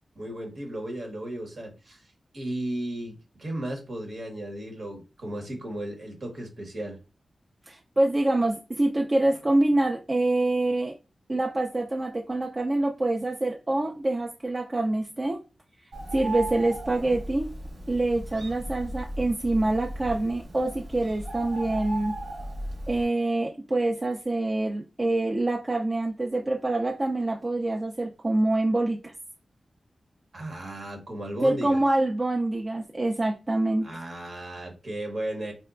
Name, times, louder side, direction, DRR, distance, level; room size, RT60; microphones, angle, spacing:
voice 1, 0.2-2.0 2.3-7.0 30.3-31.8 33.8-35.5, right 1 dB, 65° right, 2 dB, 1.1 m, -35 dB
voice 2, 7.7-10.9 11.3-15.4 16.1-17.5 17.9-22.1 22.9-29.1 31.4-33.9, right 2 dB, 40° right, 1 dB, 0.4 m, -26 dB
Bird, 15.9-23.0, right 1 dB, 90° right, 1.0 m, -36 dB
4.3 x 2.1 x 2.4 m, 0.31 s
cardioid pair, 50°, 0 cm